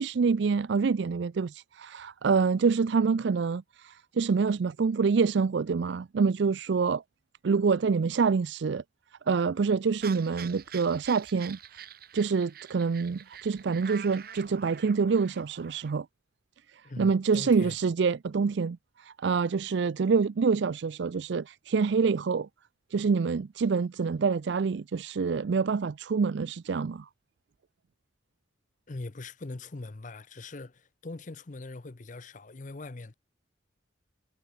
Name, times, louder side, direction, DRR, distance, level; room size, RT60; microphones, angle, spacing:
voice 1, 0.0-7.0 7.4-8.8 9.3-11.8 12.1-16.1 16.7-22.5 22.9-27.1, right 5 dB, 65° right, 0.4 m, -26 dB
sound 1, 10.0-16.0, right 8 dB, 50° right, 1.3 m, -46 dB
voice 2, 16.8-17.8 28.9-33.1, left 2 dB, 40° left, 0.7 m, -41 dB
head